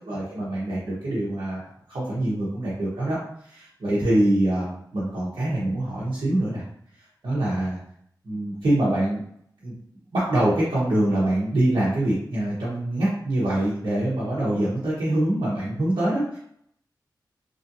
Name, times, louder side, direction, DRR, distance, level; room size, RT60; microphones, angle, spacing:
voice 1, 0.0-1.6 1.9-3.2 3.4-6.6 7.2-7.8 8.2-9.2 9.6-9.7 10.1-16.4, right 1 dB, 85° right, -9 dB, 0.9 m, -24 dB
3.1 x 2.7 x 2.6 m, 0.68 s
cardioid pair, 55°, 8 cm